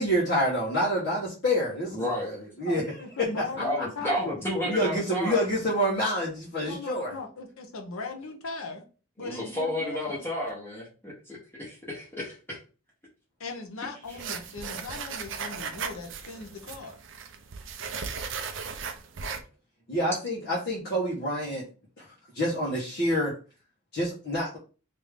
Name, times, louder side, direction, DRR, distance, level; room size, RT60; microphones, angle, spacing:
voice 1, 0.0-2.8 4.6-7.2 19.9-21.6 22.0-22.1 22.3-23.3 23.9-24.6, equal, 50° left, 1.0 m, -27 dB
voice 2, 1.9-2.4 3.6-5.5 9.2-12.6, left 1 dB, 10° left, 1.0 m, -32 dB
voice 3, 2.6-4.4 6.6-8.8 9.2-10.2 13.4-17.0, left 4 dB, 80° left, 0.8 m, -38 dB
sound 1, 14.1-19.4, right 5 dB, 60° right, 0.5 m, -37 dB
3.3 x 2.6 x 3.4 m
head